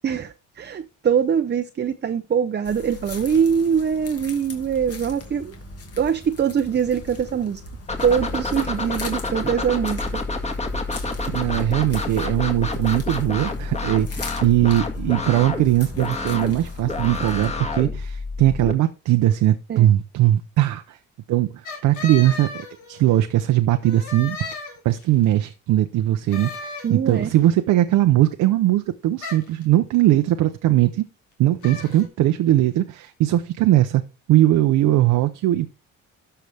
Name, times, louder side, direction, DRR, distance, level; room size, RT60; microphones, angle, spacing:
voice 1, 0.0-5.5 6.0-7.6 8.0-10.2 19.7-19.9 26.8-27.3, right 7 dB, 35° right, 0.6 m, -23 dB
sound 1, 2.6-17.5, left 1 dB, 50° left, 2.4 m, -39 dB
sound 2, 7.9-18.7, left 3 dB, 20° left, 1.9 m, -29 dB
voice 2, 11.3-21.0 21.3-31.0 31.4-34.0 34.3-35.7, right 14 dB, 85° right, 0.7 m, -20 dB
sound 3, 21.6-23.3 23.8-25.2 26.3-27.3 29.2-29.6 31.6-32.1, left 4 dB, 80° left, 3.0 m, -35 dB
12.5 x 5.7 x 3.4 m
cardioid pair, 90°, 30 cm